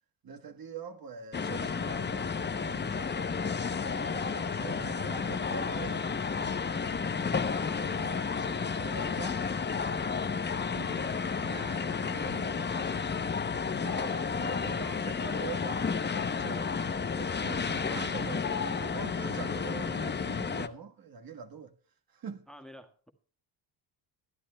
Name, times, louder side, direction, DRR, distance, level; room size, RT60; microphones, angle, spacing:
voice 1, 0.2-3.4 3.9-9.4 10.7-13.0 13.8-21.7 22.1-22.4, right 6 dB, 50° right, 1.5 m, -44 dB
sound 1, 1.3-20.7, left 5 dB, 25° left, 0.8 m, -32 dB
voice 2, 13.8-14.8 22.5-23.1, equal, ahead, 1.5 m, -49 dB
23.5 x 11.5 x 2.3 m
cardioid pair, 115°, 45 cm